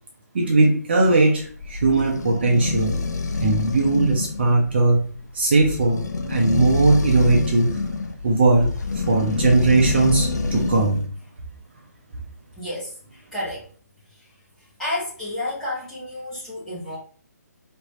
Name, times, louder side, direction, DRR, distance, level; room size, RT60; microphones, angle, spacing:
voice 1, 0.3-2.9 3.4-5.1 5.3-7.8 8.2-11.0, right 2 dB, 35° right, 0 dB, 0.8 m, -19 dB
sound 1, 1.4-11.1, left 3 dB, 70° left, 0.8 m, -27 dB
voice 2, 12.6-13.7 14.1-14.3 14.8-17.0, left 1 dB, ahead, -11 dB, 1.4 m, -31 dB
3.3 x 3.0 x 4.2 m, 0.43 s
hypercardioid pair, 170°, 9 cm